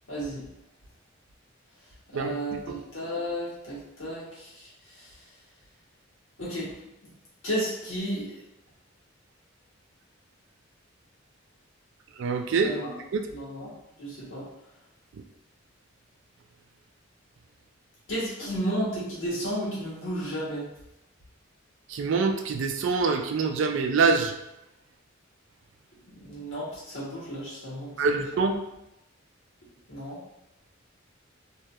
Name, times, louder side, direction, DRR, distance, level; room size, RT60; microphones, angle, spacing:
voice 1, 0.1-0.4 2.1-4.7 6.4-6.7 7.4-8.4 12.6-12.9 13.3-13.7 14.0-14.4 18.1-20.7 26.1-28.2 29.9-30.2, equal, 75° left, -8 dB, 1.3 m, -33 dB
voice 2, 12.2-12.8 13.1-13.3 21.9-24.3 28.0-28.6, right 4 dB, 65° right, 5 dB, 0.3 m, -25 dB
3.0 x 2.7 x 2.3 m, 0.87 s
head